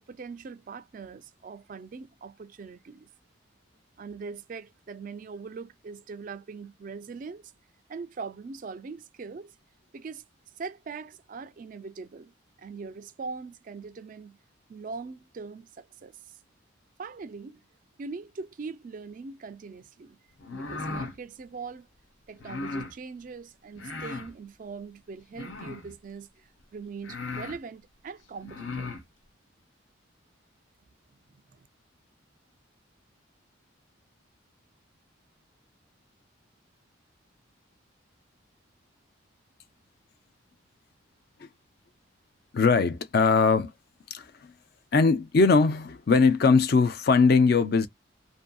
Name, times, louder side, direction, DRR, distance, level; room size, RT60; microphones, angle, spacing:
voice 1, 0.0-3.1 4.0-7.5 7.9-9.5 9.9-10.2 10.6-12.3 12.6-14.3 14.7-16.4 17.0-17.6 18.0-20.2 20.5-21.9 22.3-28.9 31.5-31.7, right 4 dB, 40° right, 0.3 m, -41 dB
sound 1, 20.4-21.2 22.4-22.9 23.8-24.3 25.3-25.9 26.6-26.7 27.0-27.6 28.4-29.0, left 3 dB, 75° left, 0.8 m, -36 dB
voice 2, 42.5-43.7 44.1-44.5 44.9-47.9, left 4 dB, 50° left, 0.4 m, -21 dB
2.6 x 2.6 x 2.2 m
head